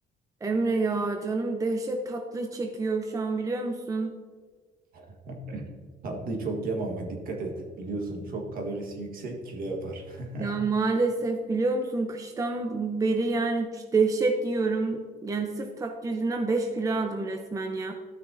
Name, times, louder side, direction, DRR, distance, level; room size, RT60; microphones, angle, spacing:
voice 1, 0.4-4.1 10.4-17.9, right 3 dB, 20° right, 4 dB, 0.7 m, -28 dB
voice 2, 4.9-5.7 6.0-10.5, right 2 dB, 60° right, 2 dB, 1.6 m, -34 dB
12.5 x 6.3 x 2.7 m, 1.5 s
cardioid pair, 110°, 17 cm